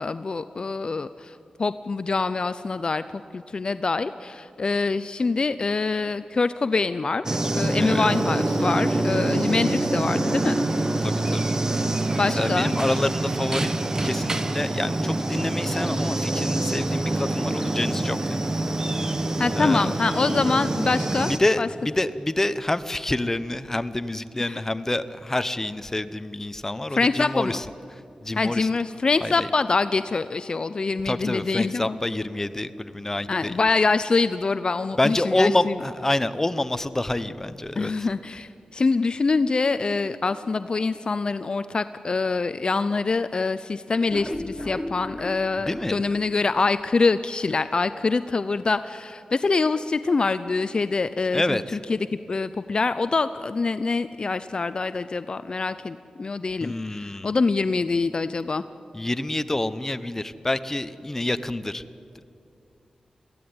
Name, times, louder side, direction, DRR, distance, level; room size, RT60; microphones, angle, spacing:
voice 1, 0.0-10.6 12.2-12.7 19.4-21.7 24.4-24.6 26.9-27.6 28.4-32.0 33.3-35.7 37.8-52.0 52.3-58.6, left 4 dB, 50° left, 13 dB, 0.5 m, -25 dB
sound 1, 7.3-21.4, right 2 dB, 30° right, 1.2 m, -25 dB
voice 2, 11.0-11.6 12.2-13.8 14.0-18.4 19.5-19.9 21.3-27.6 27.9-28.7 29.2-29.5 31.1-33.6 35.0-38.1 45.7-46.0 51.3-51.8 56.6-57.3 58.9-61.8, left 1 dB, 20° left, 12 dB, 0.9 m, -27 dB
sound 2, 44.1-47.1 47.5-47.6 48.0-48.1 48.4-48.5, left 1 dB, ahead, 1.2 m, -36 dB
22.5 x 15.5 x 9.5 m, 2.6 s
wide cardioid pair, 80°, 2 cm